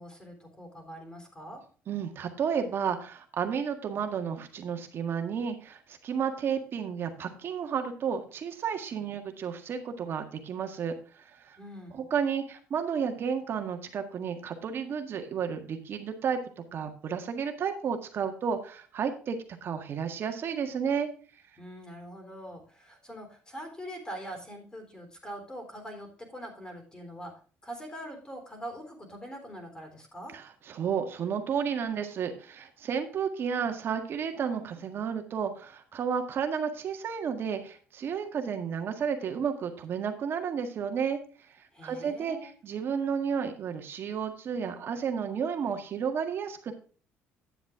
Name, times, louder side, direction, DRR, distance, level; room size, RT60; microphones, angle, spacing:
voice 1, 0.0-1.6 11.5-12.1 21.6-27.3 27.6-30.4 41.7-42.5, equal, 15° left, 3 dB, 3.4 m, -43 dB
voice 2, 1.9-11.6 11.9-16.4 16.7-21.1 30.3-41.2 41.5-46.7, right 7 dB, 50° right, 6 dB, 1.7 m, -32 dB
10.0 x 7.3 x 3.6 m, 0.40 s
cardioid pair, 100°, 5 cm